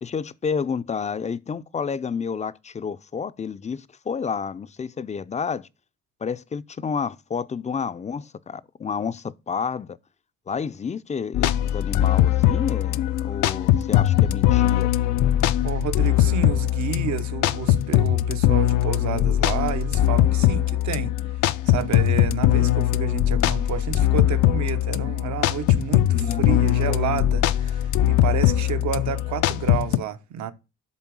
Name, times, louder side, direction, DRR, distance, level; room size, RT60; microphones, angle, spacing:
voice 1, 0.0-5.7 6.2-10.0 10.5-14.9 26.1-26.9, left 6 dB, 25° left, 0.4 m, -30 dB
sound 1, 11.3-30.0, left 13 dB, 80° left, 0.5 m, -21 dB
voice 2, 15.6-21.2 21.6-30.5, right 9 dB, 70° right, 0.9 m, -30 dB
8.2 x 3.6 x 6.1 m
cardioid pair, 90°, 30 cm